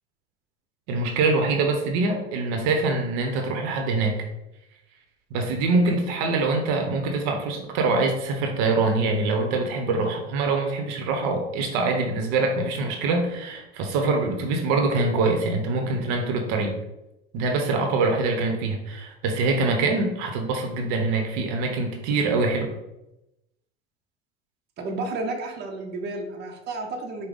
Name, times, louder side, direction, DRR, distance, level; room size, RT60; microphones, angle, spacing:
voice 1, 0.9-4.3 5.3-16.7 17.3-22.7, right 3 dB, 65° right, 4 dB, 0.9 m, -24 dB
voice 2, 24.8-27.3, right 2 dB, 35° right, 1 dB, 0.8 m, -32 dB
5.0 x 2.2 x 3.9 m, 0.91 s
hypercardioid pair, 95°, 31 cm